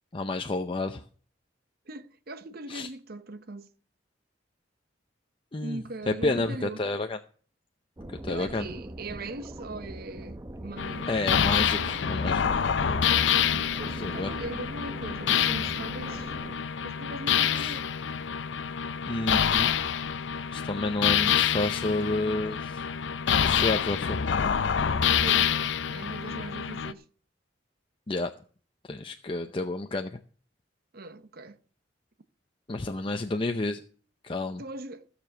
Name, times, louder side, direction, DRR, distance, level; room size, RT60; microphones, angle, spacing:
voice 1, 0.1-1.0 2.7-2.9 5.5-7.2 8.1-8.7 11.1-12.4 13.9-14.3 17.5-17.7 19.1-19.7 20.5-22.9 23.4-24.2 28.1-28.3 28.8-30.2 32.7-33.8 34.2-34.6, left 2 dB, 30° left, 0.6 m, -30 dB
voice 2, 1.9-3.7 5.6-6.8 8.3-11.1 13.8-16.3 16.8-17.9 25.2-25.6 25.8-27.0 30.9-31.6 34.6-35.1, right 2 dB, 55° right, 0.9 m, -40 dB
sound 1, 8.0-16.6, right 1 dB, 20° right, 0.7 m, -42 dB
sound 2, 10.8-26.9, left 8 dB, 70° left, 0.6 m, -27 dB
15.5 x 6.9 x 6.0 m
head